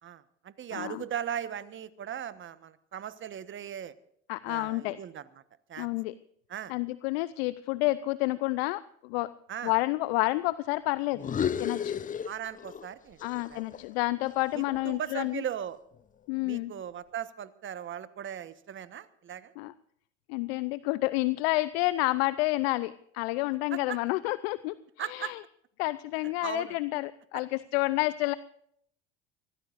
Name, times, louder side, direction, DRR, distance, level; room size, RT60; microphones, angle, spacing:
voice 1, 0.0-3.9 4.4-5.2 5.7-5.9 6.5-6.7 9.5-9.7 12.2-13.7 14.5-15.8 16.4-19.5 23.7-24.0 25.0-25.3 26.2-26.7 27.3-27.4, right 9 dB, 35° right, 14 dB, 1.3 m, -38 dB
voice 2, 0.7-1.0 4.3-5.0 5.8-6.1 6.7-9.3 9.6-11.2 11.6-12.0 13.2-15.4 16.3-16.7 19.6-19.7 20.3-25.4 25.8-28.3, left 20 dB, 65° left, 16 dB, 0.7 m, -29 dB
sound 1, 11.1-12.9 13.2-15.4, left 8 dB, 25° left, 0.7 m, -34 dB
24.5 x 17.5 x 2.6 m, 0.69 s
hypercardioid pair, 75°, 33 cm